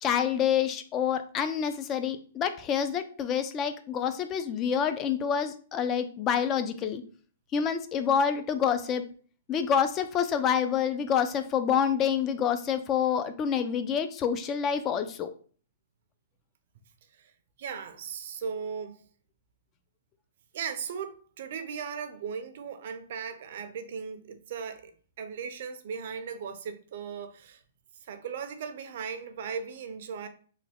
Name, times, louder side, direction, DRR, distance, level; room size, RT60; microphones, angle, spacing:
voice 1, 0.0-7.0 7.5-9.0 9.5-15.3, left 8 dB, 20° left, 0.3 m, -27 dB
voice 2, 17.6-19.0 20.5-27.6 28.0-30.3, right 6 dB, 55° right, 0.5 m, -37 dB
3.3 x 2.2 x 3.5 m
hypercardioid pair, 155°, 0 cm